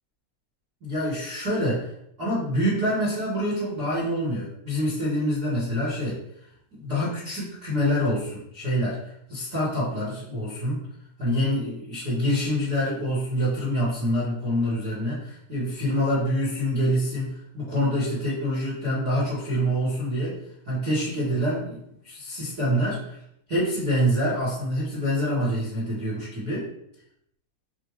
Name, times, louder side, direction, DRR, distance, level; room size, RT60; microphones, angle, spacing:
voice 1, 0.8-1.9 2.2-6.2 6.8-10.8 11.2-20.4 20.7-21.8 22.0-23.2 23.5-26.7, equal, 45° right, -8 dB, 1.3 m, -26 dB
5.2 x 2.5 x 3.1 m, 0.74 s
omnidirectional pair, 3.7 m